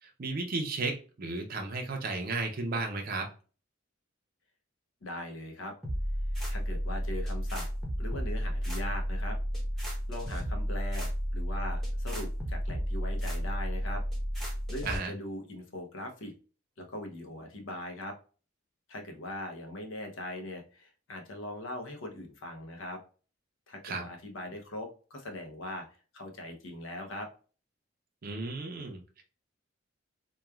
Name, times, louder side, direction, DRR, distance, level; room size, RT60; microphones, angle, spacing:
voice 1, 0.0-3.3 14.8-15.1 23.8-24.1 28.2-29.2, right 3 dB, 45° right, 2 dB, 0.5 m, -34 dB
voice 2, 5.0-5.7 6.5-7.6 8.0-9.4 9.8-14.0 14.7-16.3 16.8-18.2 18.9-23.0 23.7-25.8 26.1-27.3, left 1 dB, 75° left, 4 dB, 0.7 m, -40 dB
sound 1, 5.8-15.0, equal, ahead, 0.7 m, -32 dB
3.0 x 2.2 x 2.2 m, 0.37 s
head